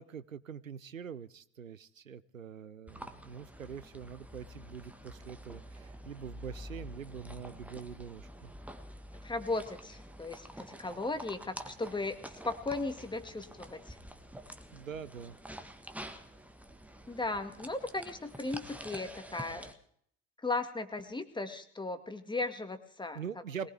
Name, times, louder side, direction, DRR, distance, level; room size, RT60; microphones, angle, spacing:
voice 1, 0.0-8.5 14.7-15.4 23.1-23.7, right 7 dB, 90° right, 19 dB, 0.6 m, -44 dB
sound 1, 2.9-19.7, equal, 5° right, 1.5 m, -48 dB
voice 2, 9.2-14.0 17.1-19.7 20.4-23.2 23.6-23.7, left 3 dB, 10° left, 8 dB, 1.9 m, -36 dB
21.5 x 19.0 x 3.5 m, 0.63 s
figure-of-eight pair, 65°, 39 cm